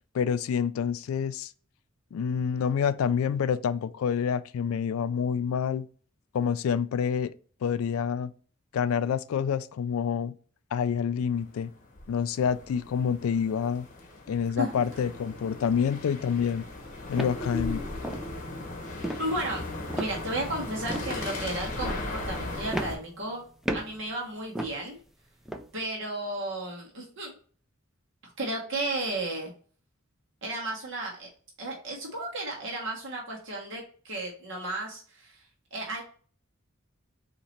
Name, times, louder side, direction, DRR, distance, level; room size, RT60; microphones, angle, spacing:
voice 1, 0.1-1.5 2.1-5.9 6.3-7.3 7.6-8.3 8.7-10.3 10.7-11.7 12.1-13.9 14.3-16.7 17.1-17.8, left 7 dB, 90° left, 0.3 m, -27 dB
sound 1, 11.4-23.0, left 2 dB, 40° left, 1.0 m, -37 dB
sound 2, 16.7-16.8 17.2-17.4 18.0-18.3 19.0-19.3 19.9-20.5 20.9-21.2 21.8-22.1 22.7-23.3 23.6-24.0 24.5-24.8 25.4-25.7, right 1 dB, ahead, 0.4 m, -34 dB
voice 2, 19.2-19.6 20.0-23.4 23.7-25.0 25.7-27.3 28.2-29.5 30.4-31.3 31.6-35.4 35.7-36.0, right 1 dB, 65° right, 1.3 m, -33 dB
4.1 x 2.9 x 4.4 m
head